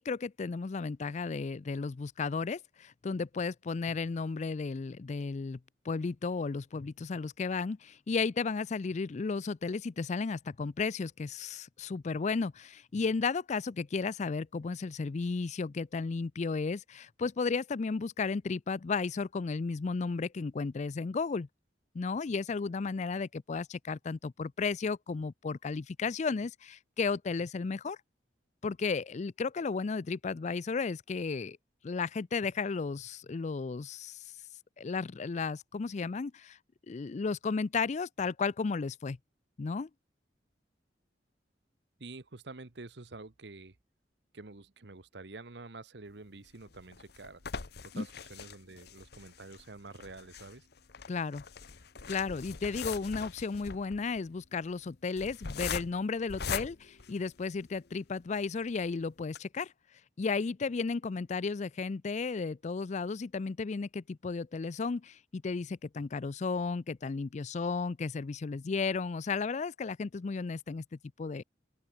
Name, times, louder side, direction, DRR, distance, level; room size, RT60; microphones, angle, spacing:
voice 1, 0.0-5.6 5.8-21.5 21.9-28.0 28.6-31.6 31.8-34.2 34.8-36.6 36.9-39.2 39.6-39.9 47.9-48.1 51.1-51.4 52.1-59.7 60.2-70.8 71.2-71.4, left 4 dB, 40° left, 0.4 m, -34 dB
voice 2, 42.0-43.8 44.3-47.4 47.8-50.7, right 3 dB, 70° right, 1.2 m, -48 dB
sound 1, 46.4-57.8 58.4-58.5 58.8-58.9 59.2-59.4, left 6 dB, 60° left, 1.0 m, -41 dB
open air
head